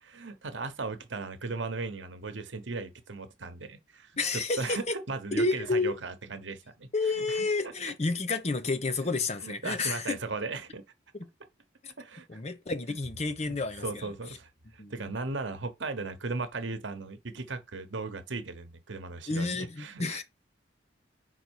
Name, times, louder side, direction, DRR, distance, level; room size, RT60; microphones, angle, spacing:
voice 1, 0.0-6.9 7.2-7.7 9.0-9.1 9.4-10.8 12.0-12.3 13.4-13.5 13.8-20.2, right 3 dB, 80° right, 1.0 m, -37 dB
voice 2, 4.2-5.0 5.3-6.0 6.9-10.2 11.8-11.9 12.3-14.1 14.8-14.9 19.3-20.2, left 3 dB, 35° left, 0.8 m, -30 dB
5.3 x 4.0 x 4.6 m
head